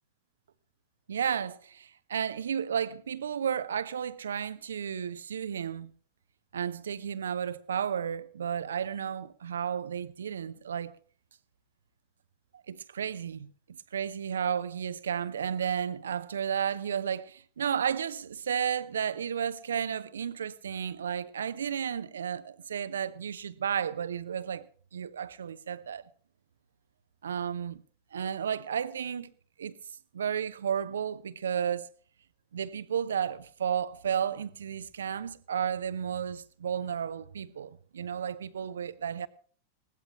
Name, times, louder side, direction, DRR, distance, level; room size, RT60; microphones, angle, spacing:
voice 1, 1.1-5.9 6.5-10.9 12.7-13.5 13.9-24.7 24.9-26.0 27.2-27.8 28.1-29.3 29.6-29.8 30.1-31.9 32.5-39.3, right 8 dB, 65° right, 0.8 m, -33 dB
20.5 x 17.5 x 3.0 m
figure-of-eight pair, 90°, 0 cm